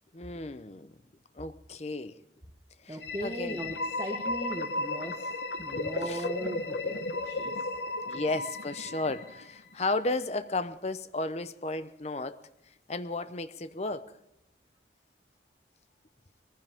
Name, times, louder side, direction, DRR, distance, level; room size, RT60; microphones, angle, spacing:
voice 1, 0.1-0.9 1.3-2.2 2.8-3.6 5.8-6.2 8.0-12.4 12.9-14.1, left 2 dB, 35° left, 0.7 m, -34 dB
voice 2, 2.9-5.3 5.6-7.7, right 1 dB, 20° right, 1.2 m, -38 dB
sound 1, 3.0-9.7, left 2 dB, 65° left, 1.0 m, -34 dB
21.5 x 15.0 x 3.6 m
head